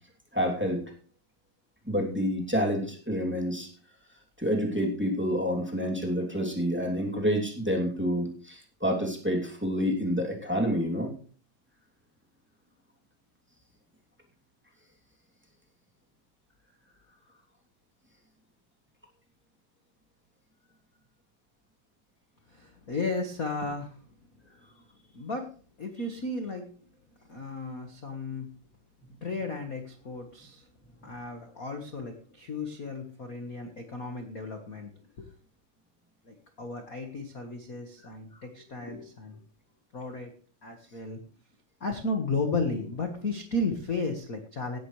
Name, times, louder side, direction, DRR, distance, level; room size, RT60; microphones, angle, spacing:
voice 1, 0.3-0.8 1.9-3.7 4.4-11.1 29.0-29.2, equal, 5° right, 0 dB, 2.3 m, -28 dB
voice 2, 22.5-24.0 25.1-25.5 25.8-26.7 27.3-28.5 29.2-30.7 31.0-34.9 35.2-35.3 36.2-39.4 39.9-40.3 40.6-41.2 41.8-44.8, left 3 dB, 45° left, 4 dB, 1.1 m, -34 dB
17.5 x 11.5 x 3.3 m, 0.42 s
omnidirectional pair, 4.1 m